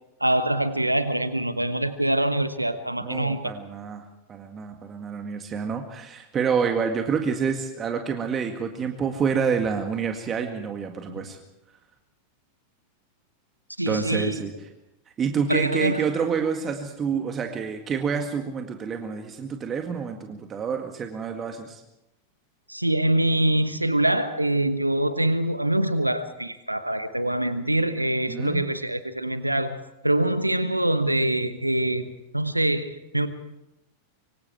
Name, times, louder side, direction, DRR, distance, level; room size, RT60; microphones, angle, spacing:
voice 1, 0.2-3.4 11.1-11.2 13.8-14.4 15.5-16.0 22.7-29.8 30.0-32.1 32.3-33.3, right 1 dB, 85° right, 12 dB, 1.1 m, -24 dB
voice 2, 3.0-11.4 13.9-14.5 15.2-21.8 28.3-28.6, right 6 dB, 25° right, 5 dB, 2.0 m, -28 dB
25.0 x 24.5 x 4.7 m, 0.90 s
figure-of-eight pair, 90°, 0 cm